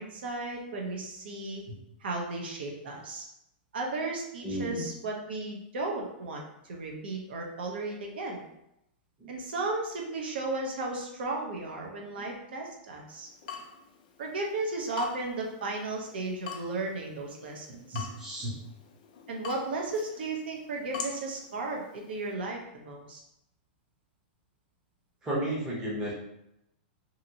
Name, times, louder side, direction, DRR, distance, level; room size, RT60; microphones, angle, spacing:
voice 1, 0.0-1.6 2.0-3.2 3.7-8.4 9.3-13.3 14.2-18.1 19.3-23.2, right 2 dB, 75° right, 0 dB, 0.7 m, -35 dB
voice 2, 4.4-4.8 17.7-18.5 25.2-26.1, right 1 dB, 10° right, -7 dB, 0.6 m, -33 dB
Water tap faucet / Drip, 13.1-22.3, left 6 dB, 45° left, 0.4 m, -45 dB
2.7 x 2.5 x 2.7 m, 0.81 s
supercardioid pair, 180°, 6 cm